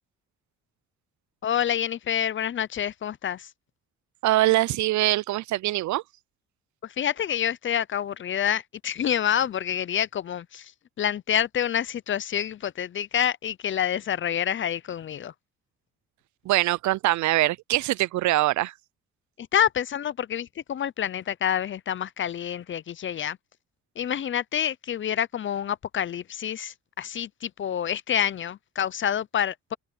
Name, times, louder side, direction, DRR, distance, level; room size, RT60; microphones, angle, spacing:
voice 1, 1.4-3.5 6.8-10.7 11.0-15.3 19.4-23.4 24.0-29.7, left 9 dB, 40° left, 0.6 m, -27 dB
voice 2, 4.2-6.0 16.5-18.7, right 16 dB, 70° right, 0.5 m, -23 dB
open air
cardioid pair, 90°, 30 cm